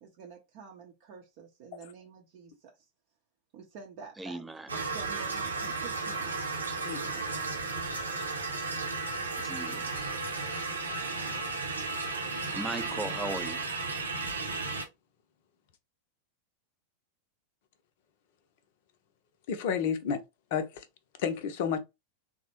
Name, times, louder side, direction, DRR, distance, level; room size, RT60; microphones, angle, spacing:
voice 1, 0.0-2.8 3.5-6.4, right 5 dB, 45° right, 0.6 m, -49 dB
voice 2, 4.2-4.7 9.4-9.8 12.5-13.6, right 2 dB, 10° right, 0.3 m, -37 dB
sound 1, 4.7-14.8, right 3 dB, 75° right, 0.8 m, -34 dB
voice 3, 6.8-7.2 19.5-20.2 20.5-20.9 21.2-21.8, left 7 dB, 50° left, 0.5 m, -31 dB
3.2 x 2.0 x 2.9 m
figure-of-eight pair, 90°, 0 cm